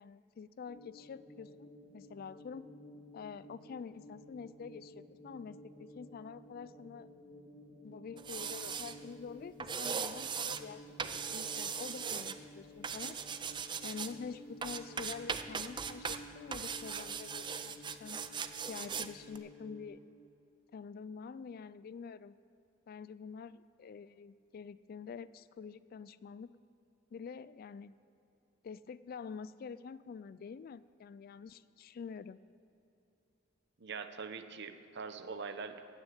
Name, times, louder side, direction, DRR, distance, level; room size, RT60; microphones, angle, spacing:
voice 1, 0.0-2.8 3.1-7.1 7.8-13.2 13.8-18.2 18.7-20.0 20.7-22.4 22.9-26.5 27.1-28.0 28.6-32.5, left 6 dB, 45° left, 17 dB, 0.3 m, -47 dB
sound 1, 0.7-19.9, left 1 dB, 80° left, 3.6 m, -54 dB
sound 2, 8.2-9.0 9.6-10.6 11.0-12.4 12.8-14.1 14.6-16.2 16.5-19.1 19.4-19.5, right 6 dB, 25° right, 0.4 m, -39 dB
voice 2, 33.8-35.8, right 5 dB, 55° right, 9 dB, 0.8 m, -43 dB
16.5 x 6.3 x 9.1 m, 3.0 s
head